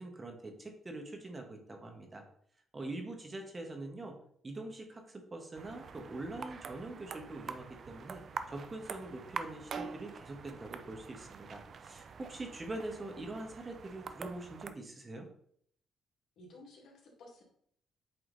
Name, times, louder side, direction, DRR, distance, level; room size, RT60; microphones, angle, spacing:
voice 1, 0.0-2.2 2.7-4.1 4.4-8.2 8.5-15.3, right 2 dB, 25° right, 3 dB, 1.4 m, -44 dB
sound 1, 5.5-14.7, right 5 dB, 50° right, 0.5 m, -45 dB
voice 2, 16.4-17.4, left 1 dB, 70° left, -1 dB, 2.2 m, -54 dB
8.1 x 3.7 x 4.0 m, 0.65 s
cardioid pair, 90°, 0 cm